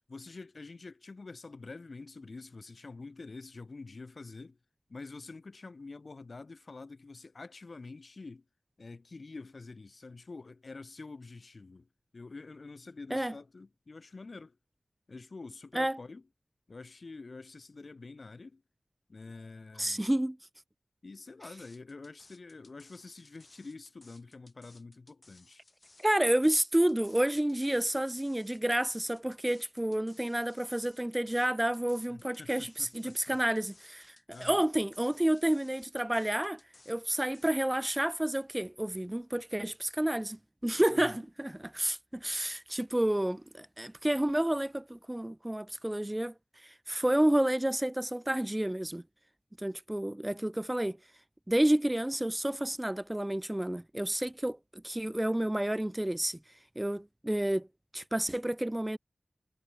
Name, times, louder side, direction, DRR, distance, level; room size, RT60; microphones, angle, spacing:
voice 1, 0.1-4.6 4.9-8.4 8.8-11.9 12.1-14.6 15.1-16.2 16.7-18.6 19.1-20.0 21.0-25.6 32.1-33.4 34.3-34.6 40.9-41.2, left 3 dB, 65° left, 3.4 m, -47 dB
voice 2, 19.8-20.4 26.0-36.6 36.9-49.0 49.6-51.0 51.5-56.4 56.8-57.7 57.9-59.0, right 1 dB, 15° right, 0.6 m, -30 dB
sound 1, 21.4-37.5, left 2 dB, 45° left, 6.0 m, -60 dB
wide cardioid pair, 55°, 0 cm